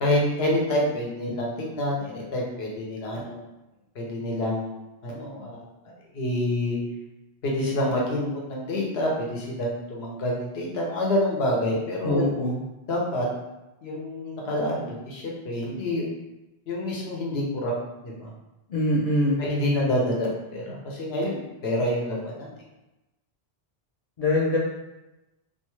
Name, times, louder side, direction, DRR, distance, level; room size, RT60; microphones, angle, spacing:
voice 1, 0.0-3.4 4.0-5.6 6.1-6.8 7.4-12.2 12.9-13.3 13.8-16.1 16.7-17.7 18.0-18.3 19.4-22.5, left 1 dB, 80° left, -3 dB, 1.0 m, -27 dB
voice 2, 12.0-12.6 18.7-19.4 24.2-24.6, left 1 dB, 55° left, -5 dB, 0.4 m, -23 dB
2.5 x 2.3 x 3.0 m, 0.99 s
omnidirectional pair, 1.1 m